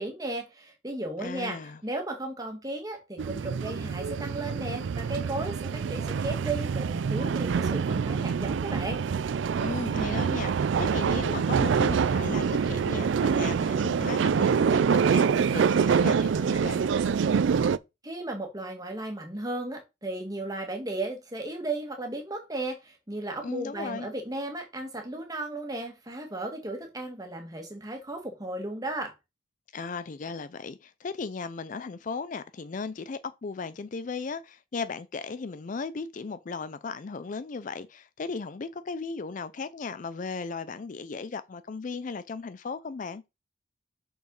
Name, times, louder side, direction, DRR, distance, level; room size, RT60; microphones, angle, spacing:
voice 1, 0.0-1.6 1.8-9.0 18.0-29.1, right 2 dB, 20° right, 1.6 m, -35 dB
voice 2, 1.2-1.8 9.6-16.8 23.4-24.1 29.7-43.2, left 4 dB, 40° left, 0.4 m, -36 dB
sound 1, 3.2-17.8, right 6 dB, 70° right, 0.4 m, -26 dB
6.3 x 5.6 x 4.0 m
head